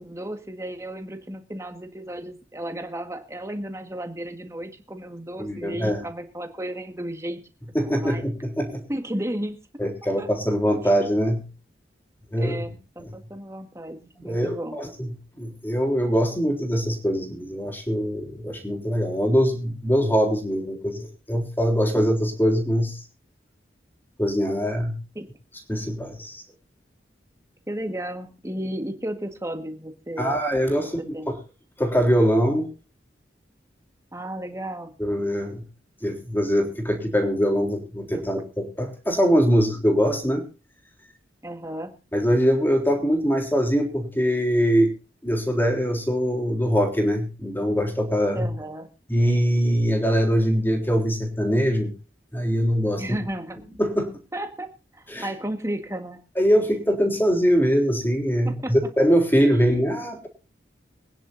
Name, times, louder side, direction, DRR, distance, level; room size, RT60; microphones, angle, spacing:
voice 1, 0.0-7.4 7.9-8.2 8.9-9.7 10.2-10.3 12.4-12.7 12.9-14.0 14.2-14.8 25.1-25.2 27.7-30.4 31.1-31.3 34.1-34.9 41.4-41.9 48.3-48.9 53.0-53.6 54.3-56.2 58.4-58.7 59.5-59.8, right 1 dB, 15° right, 6 dB, 1.7 m, -33 dB
voice 2, 5.4-6.0 7.7-8.8 9.8-11.4 12.3-13.1 14.2-15.1 15.3-23.0 24.2-25.0 25.7-26.4 30.2-31.0 31.3-31.4 31.8-32.7 35.0-35.6 36.0-40.5 42.1-44.9 45.2-48.5 49.1-51.9 52.3-53.0 53.8-54.2 55.1-55.3 56.4-60.3, equal, 10° left, 2 dB, 3.5 m, -23 dB
24.5 x 10.0 x 2.7 m, 0.34 s
head